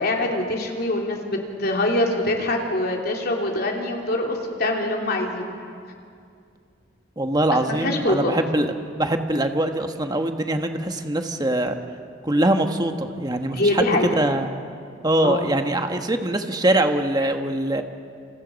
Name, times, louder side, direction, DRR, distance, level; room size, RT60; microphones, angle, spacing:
voice 1, 0.0-5.5 7.7-8.3 13.5-14.2 15.2-15.5, left 1 dB, 55° left, 0 dB, 3.2 m, -24 dB
voice 2, 7.2-11.8 12.2-14.5 15.0-17.8, right 1 dB, 20° right, 6 dB, 1.3 m, -23 dB
28.0 x 27.5 x 5.3 m, 2.3 s
head